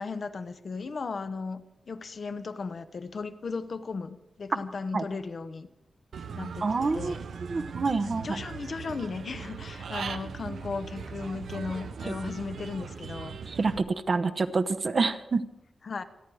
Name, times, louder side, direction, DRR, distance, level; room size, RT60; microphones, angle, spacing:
voice 1, 0.0-5.7 6.3-7.2 8.0-13.4 15.8-16.0, left 4 dB, 45° left, 10 dB, 0.9 m, -36 dB
Human voice / Bird, 6.1-13.8, right 6 dB, 85° right, 1.0 m, -39 dB
voice 2, 6.6-7.1 7.5-8.4 12.1-12.2 13.5-15.4, right 4 dB, 40° right, 10 dB, 0.9 m, -27 dB
27.5 x 10.5 x 4.8 m, 0.86 s
wide cardioid pair, 180°, 0 cm